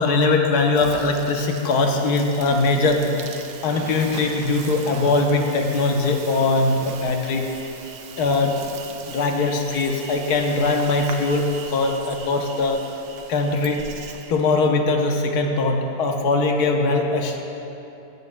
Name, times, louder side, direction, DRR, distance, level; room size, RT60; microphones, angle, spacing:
voice 1, 0.0-3.2 3.6-7.5 8.2-8.6 9.1-12.9 13.3-13.9 14.3-17.4, left 3 dB, 60° left, 2 dB, 1.3 m, -21 dB
Insect, 0.7-14.3, right 6 dB, 75° right, 1.3 m, -39 dB
22.5 x 8.2 x 2.2 m, 2.9 s
omnidirectional pair, 2.0 m